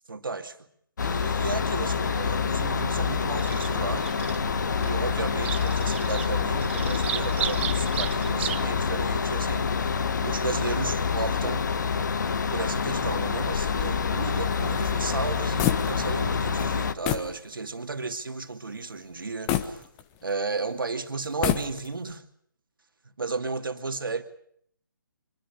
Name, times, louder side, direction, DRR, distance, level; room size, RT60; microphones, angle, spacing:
voice 1, 0.1-0.6 1.0-4.1 4.8-9.8 10.2-11.7 12.5-19.8 20.2-22.2 23.2-24.2, right 3 dB, 75° right, 2.6 m, -33 dB
sound 1, 1.0-16.9, left 6 dB, 55° left, 1.5 m, -27 dB
Bird vocalization bird call bird song, 3.4-8.6, right 10 dB, 30° right, 1.2 m, -35 dB
sound 2, 13.5-16.3 16.6-16.7 17.0-17.4 17.8-17.9 19.5-20.5 21.2-22.1, left 11 dB, 20° left, 1.4 m, -30 dB
25.0 x 23.5 x 6.8 m
figure-of-eight pair, 150°, 11 cm